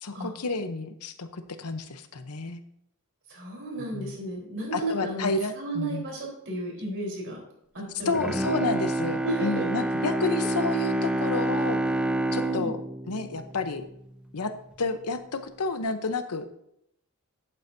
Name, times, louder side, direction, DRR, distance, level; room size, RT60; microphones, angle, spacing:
voice 1, 0.0-2.6 3.9-4.2 4.7-6.0 8.0-11.8 12.3-12.8 13.1-13.8 14.3-14.5 14.8-16.5, left 3 dB, 80° left, 9 dB, 0.8 m, -30 dB
voice 2, 3.3-5.3 5.6-7.4 7.7-8.3 8.6-8.7 9.2-9.7 12.3-12.7, right 1 dB, 60° right, -1 dB, 4.0 m, -33 dB
Bowed string instrument, 8.0-14.3 14.7-14.8, right 1 dB, 5° right, 0.4 m, -28 dB
11.5 x 8.9 x 2.7 m, 0.75 s
head